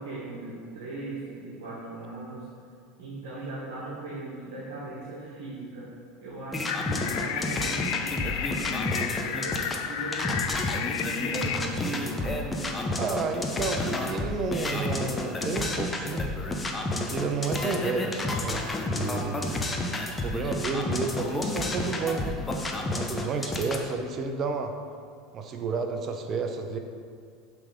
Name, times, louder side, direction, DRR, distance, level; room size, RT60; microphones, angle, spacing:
voice 1, 0.0-2.5 3.0-5.9 6.2-10.4 10.7-12.4, right 2 dB, 75° right, -8 dB, 1.3 m, -39 dB
sound 1, 6.5-23.9, left 2 dB, 20° left, 0.7 m, -30 dB
sound 2, 6.7-11.6, left 9 dB, 70° left, 0.3 m, -32 dB
voice 2, 13.0-16.3 16.9-19.7 20.2-22.4 22.9-24.7 25.3-26.8, right 4 dB, 40° right, 5 dB, 0.6 m, -31 dB
5.9 x 3.4 x 5.1 m, 2.3 s
hypercardioid pair, 90°, 0 cm